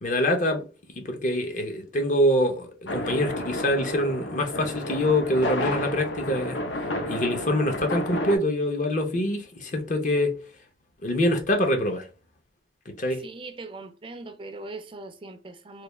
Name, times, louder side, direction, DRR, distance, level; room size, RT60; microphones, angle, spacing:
voice 1, 0.0-0.6 1.0-6.6 7.1-10.4 11.0-12.1 13.0-13.2, left 1 dB, 45° left, 0.7 m, -25 dB
sound 1, 2.9-8.4, left 1 dB, 80° left, 0.7 m, -31 dB
voice 2, 13.2-15.8, right 2 dB, 30° right, 0.4 m, -40 dB
3.3 x 2.3 x 3.3 m
head